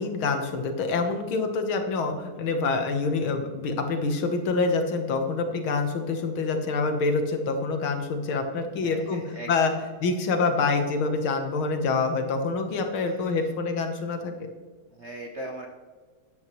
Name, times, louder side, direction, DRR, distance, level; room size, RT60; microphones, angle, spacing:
voice 1, 0.0-9.2 9.5-9.7 10.0-14.5, left 4 dB, 75° left, 5 dB, 2.0 m, -26 dB
voice 2, 8.8-9.8 13.0-13.2 14.9-15.7, right 1 dB, 50° right, 1 dB, 0.8 m, -40 dB
13.5 x 10.0 x 3.1 m, 1.5 s
omnidirectional pair, 2.3 m